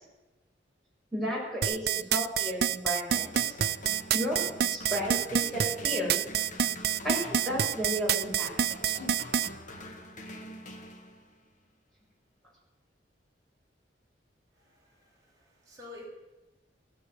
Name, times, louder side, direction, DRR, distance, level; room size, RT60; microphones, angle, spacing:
voice 1, 1.1-3.5 4.1-6.1 7.0-8.6 9.0-9.1, equal, ahead, -4 dB, 6.1 m, -33 dB
sound 1, 1.6-9.5, right 9 dB, 60° right, 0.5 m, -27 dB
sound 2, 3.1-11.5, left 1 dB, 45° left, 1.8 m, -45 dB
voice 2, 14.5-16.1, left 3 dB, 20° right, -5 dB, 6.6 m, -50 dB
15.5 x 10.0 x 9.0 m, 1.1 s
head